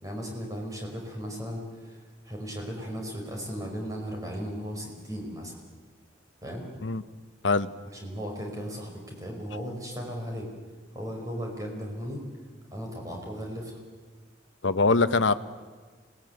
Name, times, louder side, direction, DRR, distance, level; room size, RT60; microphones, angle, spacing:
voice 1, 0.0-5.6 6.4-6.7 7.9-10.5 10.9-12.3 12.7-13.7, equal, 20° right, 0 dB, 5.2 m, -36 dB
voice 2, 14.6-15.3, left 3 dB, 80° left, 13 dB, 1.0 m, -22 dB
26.0 x 19.0 x 9.3 m, 1.4 s
head